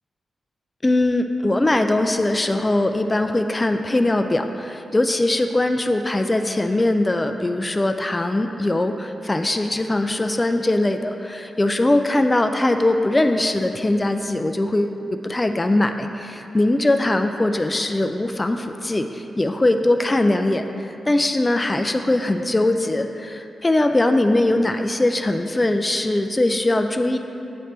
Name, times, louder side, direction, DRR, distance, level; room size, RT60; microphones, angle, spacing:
voice 1, 0.8-27.2, left 2 dB, 25° left, 6 dB, 0.3 m, -21 dB
7.8 x 3.2 x 4.4 m, 2.8 s
cardioid pair, 50°, 0 cm